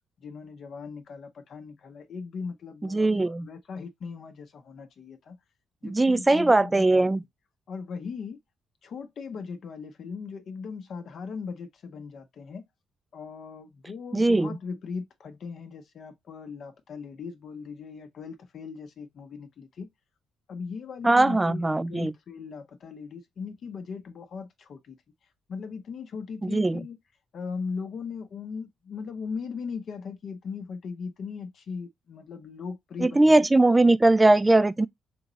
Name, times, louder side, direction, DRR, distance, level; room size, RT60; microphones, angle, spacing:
voice 1, 0.2-5.4 5.8-7.1 7.7-8.4 8.8-12.6 13.1-19.9 20.5-25.0 25.5-27.0 27.3-33.5, left 5 dB, 60° left, 0.7 m, -38 dB
voice 2, 2.8-3.5 5.8-7.2 14.1-14.6 21.0-22.1 26.4-26.8 33.0-34.9, right 2 dB, 15° right, 0.3 m, -20 dB
3.5 x 3.0 x 3.8 m
cardioid pair, 90°, 0 cm